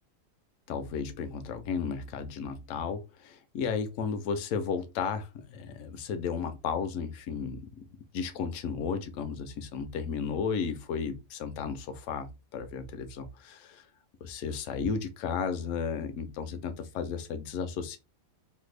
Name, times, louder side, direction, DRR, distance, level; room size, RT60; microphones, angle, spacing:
voice 1, 0.7-7.9 8.1-13.9 14.2-18.0, left 6 dB, 70° left, 0.7 m, -34 dB
3.3 x 2.0 x 3.1 m
omnidirectional pair, 1.8 m